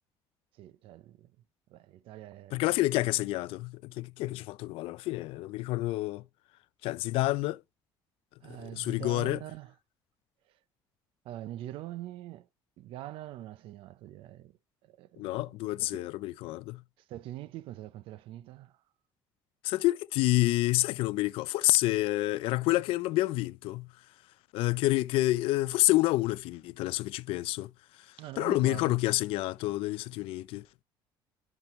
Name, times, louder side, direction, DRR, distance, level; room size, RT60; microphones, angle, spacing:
voice 1, 0.6-1.3 1.7-2.6 8.4-9.7 11.2-12.5 12.8-14.5 14.8-15.5 15.8-16.0 17.1-18.8 28.2-29.0, right 14 dB, 70° right, 0.8 m, -43 dB
voice 2, 2.5-6.2 6.8-7.6 8.6-9.4 15.2-16.8 19.6-23.9 24.5-27.7 28.4-30.6, left 18 dB, 80° left, 0.6 m, -28 dB
11.0 x 6.0 x 3.1 m
cardioid pair, 140°, 9 cm